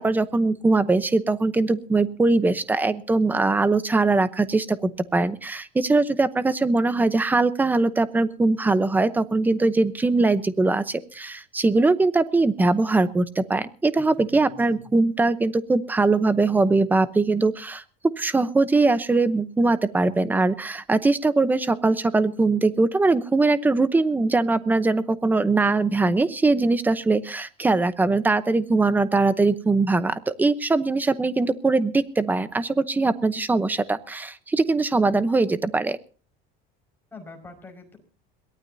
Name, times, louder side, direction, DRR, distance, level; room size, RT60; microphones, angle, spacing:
voice 1, 0.0-17.8 18.2-36.0, right 3 dB, 10° right, 13 dB, 0.8 m, -21 dB
voice 2, 14.0-14.8 37.1-38.0, left 2 dB, 10° left, 3 dB, 5.3 m, -44 dB
22.5 x 18.5 x 2.8 m, 0.37 s
cardioid pair, 175°, 21 cm